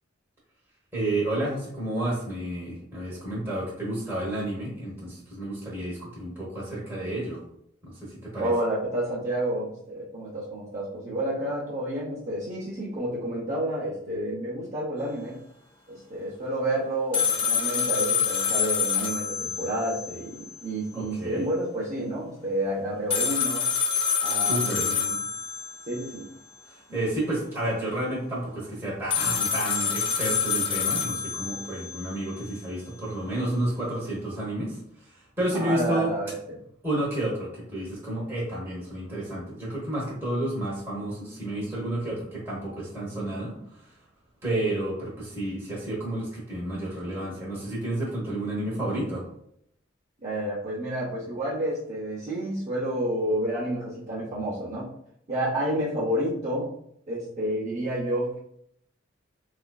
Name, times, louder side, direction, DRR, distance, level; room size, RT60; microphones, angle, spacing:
voice 1, 0.9-7.4 7.8-8.5 20.9-21.5 24.2-24.9 26.7-36.1 36.8-43.9 44.4-49.3, right 1 dB, 15° right, -7 dB, 0.9 m, -31 dB
voice 2, 8.4-15.4 15.9-23.7 24.2-25.2 25.9-26.3 26.9-27.0 35.5-36.3 50.2-54.9 55.3-56.7 57.1-58.4, right 1 dB, 40° right, -6 dB, 0.6 m, -30 dB
sound 1, 17.1-20.2 20.5-20.6 23.1-26.1 29.1-32.1, left 7 dB, 30° left, 0.4 m, -27 dB
4.0 x 2.5 x 2.2 m, 0.71 s
head